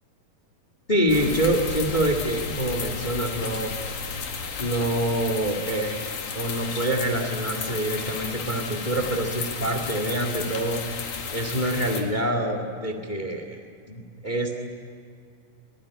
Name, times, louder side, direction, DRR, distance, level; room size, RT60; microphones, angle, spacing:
voice 1, 0.9-3.7 4.6-13.6 13.9-14.6, right 1 dB, 25° left, 5 dB, 0.9 m, -26 dB
Thunderstorm, 1.1-8.5, left 2 dB, 85° left, 4.4 m, -39 dB
sound 1, 1.1-12.0, left 6 dB, 65° left, 3.5 m, -34 dB
24.0 x 19.0 x 9.8 m, 2.2 s
omnidirectional pair, 4.2 m